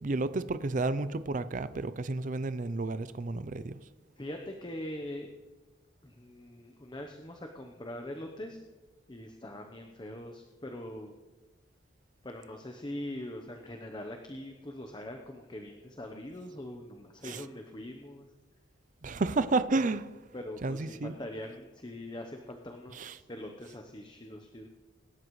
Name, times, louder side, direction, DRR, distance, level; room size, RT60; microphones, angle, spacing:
voice 1, 0.0-3.8 17.2-17.4 19.0-20.1 20.6-21.1 22.9-23.1, right 3 dB, 40° right, 13 dB, 0.5 m, -31 dB
voice 2, 4.2-5.3 6.0-8.6 9.1-11.2 12.2-18.3 20.3-24.7, left 1 dB, 25° left, 3 dB, 0.9 m, -42 dB
25.5 x 12.5 x 3.2 m, 1.3 s
head